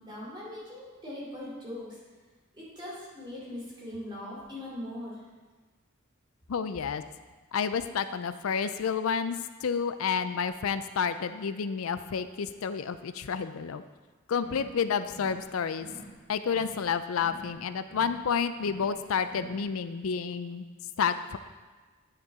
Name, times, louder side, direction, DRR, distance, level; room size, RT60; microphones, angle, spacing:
voice 1, 0.0-2.0 2.5-5.1, left 1 dB, 20° right, -7 dB, 2.9 m, -40 dB
voice 2, 6.5-7.0 7.5-13.8 14.3-15.9 16.3-20.7 21.0-21.4, left 6 dB, 85° left, 12 dB, 0.4 m, -30 dB
sound 1, 14.3-14.8 15.0-15.5 15.7-16.2 16.4-16.9 17.1-17.6 17.8-18.3 18.5-19.0 19.2-19.7, equal, 65° left, 2.1 m, -47 dB
9.5 x 6.6 x 3.6 m, 1.3 s
head